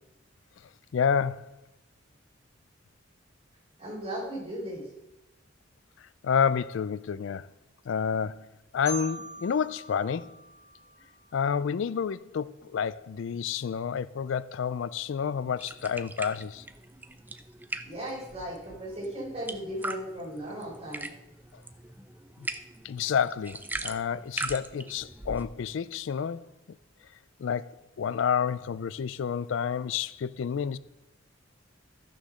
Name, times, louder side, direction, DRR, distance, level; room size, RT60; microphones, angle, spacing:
voice 1, 0.9-1.5 6.0-7.5 7.9-8.5 8.7-10.4 11.3-16.7 22.8-26.5 27.4-30.8, left 7 dB, 65° left, 0.3 m, -29 dB
voice 2, 3.8-4.9 17.8-21.1, equal, 30° right, 4.6 m, -36 dB
Marimba xylophone, 8.9-11.7, right 1 dB, 25° left, 3.0 m, -42 dB
sound 1, 15.6-25.5, right 2 dB, 10° right, 0.4 m, -40 dB
13.0 x 6.7 x 6.3 m
head